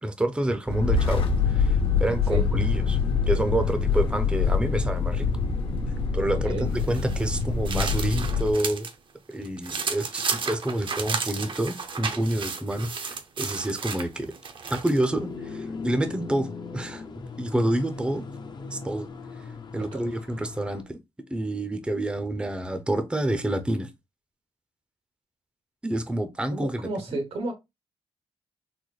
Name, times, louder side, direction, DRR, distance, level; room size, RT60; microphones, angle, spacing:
voice 1, 0.0-3.0 3.3-5.3 6.1-8.9 9.3-14.3 14.7-17.0 17.4-18.3 18.7-19.1 19.7-21.0 21.3-23.9 25.8-27.2, right 1 dB, 10° right, 0.5 m, -28 dB
sound 1, 0.7-8.5, left 5 dB, 60° left, 0.9 m, -25 dB
voice 2, 6.3-6.7 19.9-20.1 26.5-27.5, right 2 dB, 75° right, 1.0 m, -32 dB
sound 2, 6.8-8.9 9.3-15.1, right 5 dB, 55° right, 0.6 m, -33 dB
sound 3, 15.1-20.8, left 4 dB, 45° left, 0.6 m, -38 dB
3.9 x 2.1 x 3.1 m
cardioid pair, 75°, 10 cm